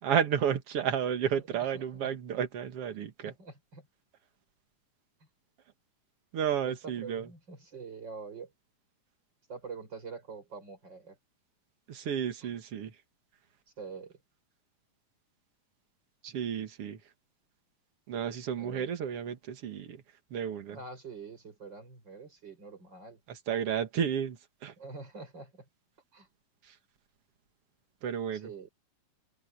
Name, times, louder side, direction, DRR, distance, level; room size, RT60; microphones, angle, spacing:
voice 1, 0.0-3.3 6.3-7.3 11.9-12.9 16.2-17.0 18.1-20.0 20.3-20.8 23.3-24.7 26.6-26.7 28.0-28.5, right 8 dB, 50° right, 2.3 m, -32 dB
voice 2, 1.5-2.1 3.2-3.9 6.6-8.5 9.5-11.2 13.8-14.2 18.5-18.9 20.7-23.2 24.8-25.7 26.1-26.3 28.3-28.7, right 4 dB, 30° right, 5.7 m, -45 dB
omnidirectional pair, 3.9 m